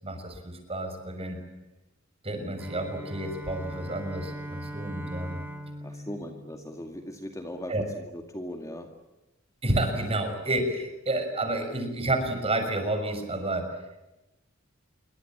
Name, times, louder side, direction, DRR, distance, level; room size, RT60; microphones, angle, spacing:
voice 1, 0.0-1.4 2.2-5.4 7.7-7.8 9.6-13.7, right 1 dB, 30° right, 6 dB, 6.2 m, -30 dB
Bowed string instrument, 2.6-7.3, right 1 dB, 10° right, 3.7 m, -41 dB
voice 2, 5.8-8.9, equal, 15° left, 4 dB, 2.2 m, -39 dB
27.5 x 24.0 x 8.8 m, 0.97 s
head